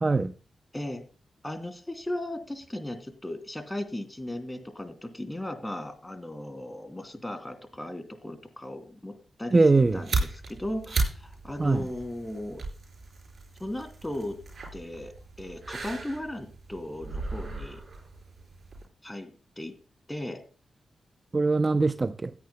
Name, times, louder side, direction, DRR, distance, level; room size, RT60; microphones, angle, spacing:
voice 1, 0.0-0.3 9.5-10.0 11.6-11.9 21.3-22.3, right 3 dB, 35° right, 0.6 m, -22 dB
voice 2, 1.4-9.1 9.4-9.6 9.9-12.6 13.6-14.4 14.7-17.8 19.0-19.7 20.1-20.4, left 1 dB, 15° left, 2.8 m, -36 dB
sound 1, 9.7-18.9, right 3 dB, 60° right, 5.4 m, -36 dB
17.0 x 9.4 x 2.2 m
supercardioid pair, 50°, 0 cm